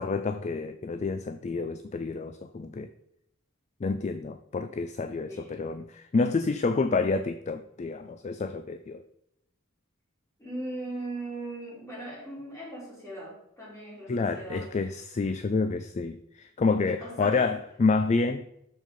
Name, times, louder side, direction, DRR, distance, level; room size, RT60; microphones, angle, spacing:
voice 1, 0.0-2.9 3.8-9.0 14.1-18.5, left 4 dB, 35° left, 10 dB, 0.4 m, -28 dB
voice 2, 5.3-5.6 10.4-14.7 17.0-17.5, right 2 dB, 15° left, -5 dB, 3.5 m, -39 dB
6.6 x 6.4 x 5.3 m, 0.80 s
head